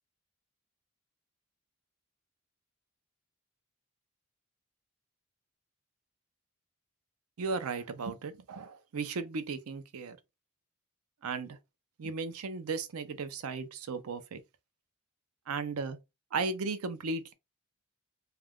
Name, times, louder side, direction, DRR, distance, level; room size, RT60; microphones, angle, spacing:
voice 1, 7.4-10.2 11.2-11.6 12.0-14.4 15.5-16.0 16.3-17.3, right 4 dB, 80° right, 0.5 m, -35 dB
2.4 x 2.2 x 3.4 m
head